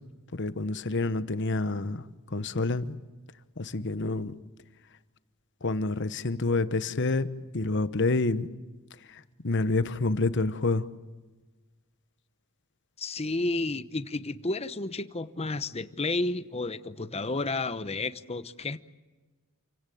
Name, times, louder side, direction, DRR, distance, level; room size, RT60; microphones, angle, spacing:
voice 1, 0.3-2.0 2.3-3.0 3.6-4.3 5.6-8.5 9.4-10.8, left 3 dB, 55° left, 13 dB, 1.1 m, -28 dB
voice 2, 13.0-18.8, left 2 dB, 30° left, 12 dB, 1.0 m, -31 dB
28.5 x 17.0 x 9.3 m, 1.3 s
head